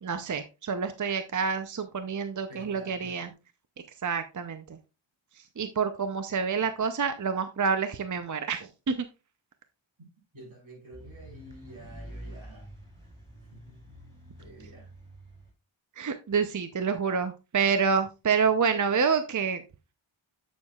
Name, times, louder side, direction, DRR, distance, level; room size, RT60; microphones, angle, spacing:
voice 1, 0.0-3.3 4.0-4.8 5.4-9.1 16.0-19.6, right 6 dB, 40° right, 0.6 m, -28 dB
voice 2, 2.5-3.2 10.3-12.8 13.5-14.0 14.4-14.9, right 1 dB, 75° right, 4.6 m, -49 dB
sound 1, 10.9-15.5, right 1 dB, 10° right, 4.4 m, -47 dB
10.5 x 6.4 x 2.3 m
wide cardioid pair, 75°, 48 cm